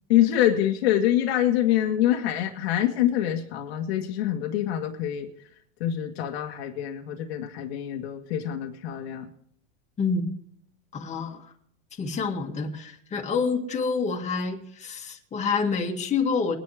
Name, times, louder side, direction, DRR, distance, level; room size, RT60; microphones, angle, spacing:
voice 1, 0.1-5.3 5.8-9.3, left 12 dB, 85° left, 2 dB, 1.8 m, -25 dB
voice 2, 10.0-10.3 10.9-11.5 12.0-16.6, left 5 dB, 20° left, 2 dB, 2.1 m, -27 dB
21.5 x 10.5 x 3.5 m, 0.65 s
supercardioid pair, 145°, 31 cm